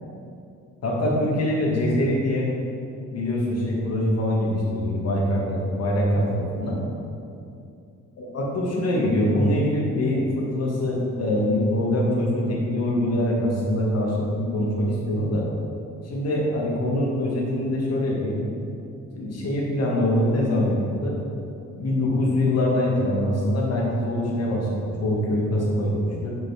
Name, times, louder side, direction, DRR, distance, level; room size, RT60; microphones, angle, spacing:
voice 1, 0.8-2.5 3.1-6.8 8.2-15.5 16.0-18.4 19.1-21.2 21.8-26.4, left 1 dB, 55° left, -4 dB, 2.0 m, -24 dB
5.9 x 5.8 x 6.0 m, 2.6 s
cardioid pair, 90°, 30 cm